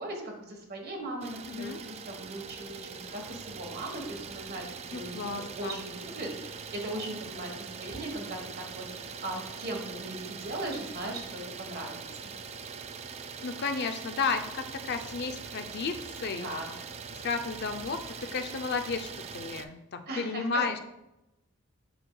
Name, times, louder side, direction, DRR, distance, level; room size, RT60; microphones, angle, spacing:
voice 1, 0.0-12.3 16.3-16.7 20.1-20.8, right 1 dB, 50° right, 2 dB, 1.3 m, -39 dB
Idling, 1.2-19.7, right 5 dB, 30° right, 0.3 m, -42 dB
voice 2, 1.5-1.8 4.9-5.8 13.4-16.5 17.1-20.8, left 4 dB, 50° left, 7 dB, 0.5 m, -33 dB
7.8 x 6.1 x 2.3 m, 0.91 s
head